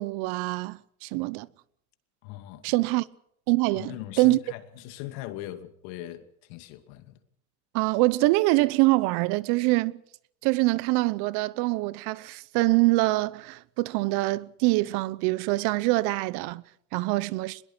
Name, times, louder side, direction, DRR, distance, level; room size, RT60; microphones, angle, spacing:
voice 1, 0.0-1.5 2.6-3.1 3.5-4.4 7.7-10.0 10.4-16.6 16.9-17.6, right 21 dB, 60° right, 0.9 m, -24 dB
voice 2, 2.2-2.7 3.7-7.2, left 14 dB, 70° left, 2.6 m, -40 dB
23.0 x 21.5 x 6.2 m
supercardioid pair, 120°, 43 cm